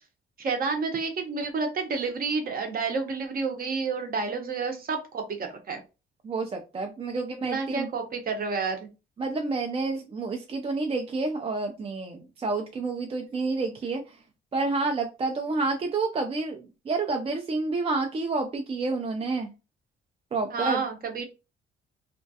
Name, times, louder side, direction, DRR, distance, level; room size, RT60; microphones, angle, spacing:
voice 1, 0.4-5.8 7.4-8.9 20.5-21.2, right 4 dB, 45° right, 4 dB, 0.7 m, -30 dB
voice 2, 6.2-7.9 9.2-14.2 14.5-19.5 20.3-20.8, right 3 dB, 30° right, 4 dB, 0.4 m, -29 dB
2.3 x 2.1 x 2.7 m, 0.29 s
cardioid pair, 90°, 20 cm